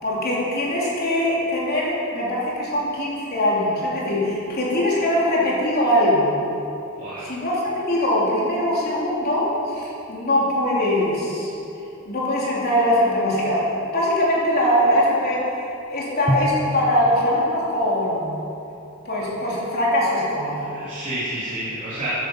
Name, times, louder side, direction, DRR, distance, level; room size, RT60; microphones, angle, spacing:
voice 1, 0.0-6.3 7.2-11.5 12.1-15.5 15.9-18.4 19.1-20.6, left 1 dB, 50° left, -6 dB, 3.7 m, -22 dB
voice 2, 7.0-7.3 20.6-22.1, right 1 dB, 40° right, -12 dB, 3.1 m, -30 dB
Drum, 16.3-18.0, equal, 25° left, 0.9 m, -28 dB
14.0 x 10.5 x 5.6 m, 2.8 s
head